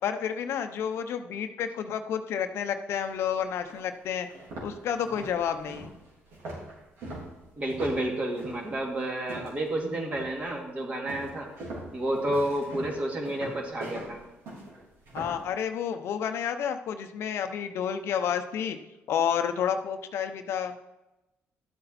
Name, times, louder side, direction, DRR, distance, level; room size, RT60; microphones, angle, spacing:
voice 1, 0.0-4.3 4.6-6.0 15.1-18.8 19.1-20.7, left 8 dB, 70° left, 8 dB, 0.8 m, -30 dB
sound 1, 3.1-3.2 3.7-3.8 4.2-9.7 10.1-10.5 11.1-15.5, right 2 dB, 75° right, 4.1 m, -41 dB
voice 2, 7.6-11.5 11.9-14.2, right 1 dB, 30° right, 0 dB, 2.5 m, -30 dB
12.0 x 8.0 x 4.3 m, 0.97 s
cardioid pair, 105°, 5 cm